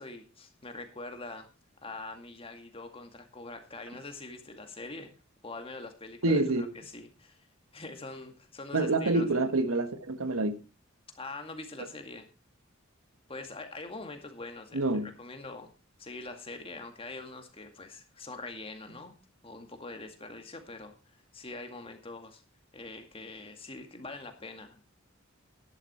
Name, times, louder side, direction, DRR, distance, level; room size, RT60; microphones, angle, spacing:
voice 1, 0.0-1.5 1.8-5.1 5.4-7.5 7.7-9.5 11.2-12.3 13.3-15.7 16.0-19.1 19.4-22.4 22.7-24.8, left 3 dB, 25° left, 2.1 m, -44 dB
voice 2, 6.2-6.6 8.7-10.6 14.7-15.1, right 2 dB, 90° right, 1.4 m, -27 dB
12.0 x 11.0 x 4.3 m
head